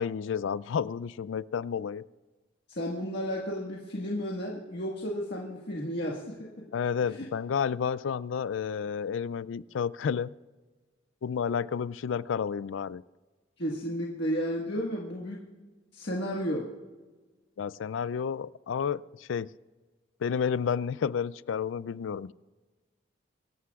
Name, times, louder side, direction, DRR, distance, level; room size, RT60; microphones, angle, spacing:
voice 1, 0.0-2.0 6.7-10.3 11.2-13.0 17.6-19.5 20.2-22.3, left 7 dB, 75° left, 19 dB, 0.4 m, -31 dB
voice 2, 2.7-6.7 7.1-7.3 13.6-15.4 15.9-16.7, equal, 60° left, -2 dB, 1.6 m, -33 dB
24.5 x 14.0 x 2.4 m, 1.3 s
head